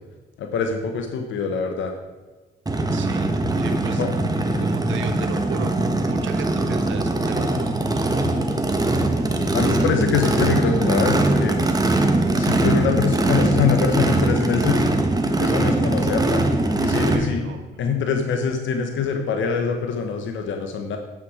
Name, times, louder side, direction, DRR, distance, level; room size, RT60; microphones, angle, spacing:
voice 1, 0.4-1.9 4.0-4.1 9.5-11.6 12.3-14.8 15.4-16.5 16.8-17.4 17.8-21.0, left 6 dB, 75° left, 4 dB, 1.1 m, -24 dB
Race car auto racing / Idling / Accelerating revving vroom, 2.7-17.2, right 2 dB, 20° right, 1.3 m, -21 dB
voice 2, 2.9-4.0 4.6-8.1 9.6-9.9 17.0-17.8, right 6 dB, 75° right, 6 dB, 1.3 m, -35 dB
9.3 x 7.8 x 4.9 m, 1.3 s
cardioid pair, 90°, 20 cm